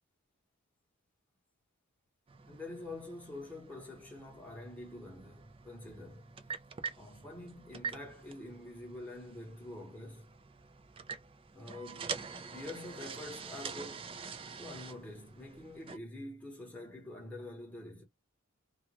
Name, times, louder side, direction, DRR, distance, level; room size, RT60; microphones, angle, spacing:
sound 1, 2.3-16.0, right 5 dB, 25° right, 0.3 m, -46 dB
voice 1, 2.5-6.4 7.0-10.4 11.5-12.2 12.5-14.1 14.6-18.0, left 2 dB, 5° left, 1.0 m, -46 dB
2.4 x 2.2 x 2.9 m
head